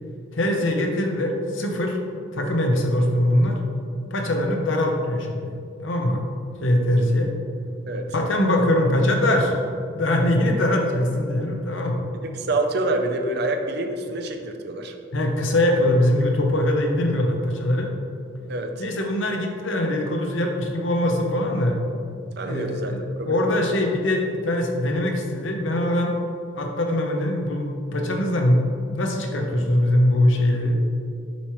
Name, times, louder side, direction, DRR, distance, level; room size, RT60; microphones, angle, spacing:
voice 1, 0.3-2.0 2.3-3.6 4.1-5.5 5.8-6.2 6.6-7.3 8.1-9.5 9.9-12.0 15.1-17.9 18.8-21.8 22.4-26.1 26.5-28.6 28.9-30.7, left 1 dB, 85° left, 2 dB, 0.8 m, -22 dB
voice 2, 12.2-15.0 18.5-18.8 22.4-23.6, right 2 dB, 55° right, 5 dB, 0.5 m, -27 dB
7.0 x 4.4 x 3.1 m, 2.5 s
head